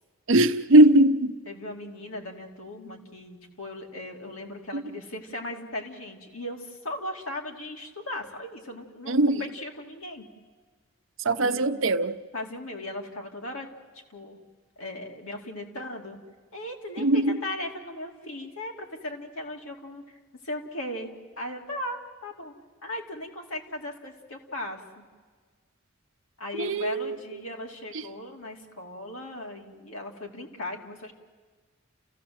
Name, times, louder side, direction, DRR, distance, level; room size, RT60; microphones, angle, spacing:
voice 1, 0.3-1.3 4.7-4.8 9.1-9.4 11.2-12.2 17.0-17.4 26.6-27.2, right 1 dB, 65° right, 10 dB, 0.8 m, -20 dB
voice 2, 1.5-10.2 11.3-11.7 12.3-13.7 14.1-14.4 14.8-16.2 16.5-20.2 20.4-21.1 21.4-22.5 22.8-25.0 26.4-31.1, left 1 dB, 85° left, 1 dB, 2.7 m, -37 dB
30.0 x 15.5 x 7.8 m, 1.5 s
head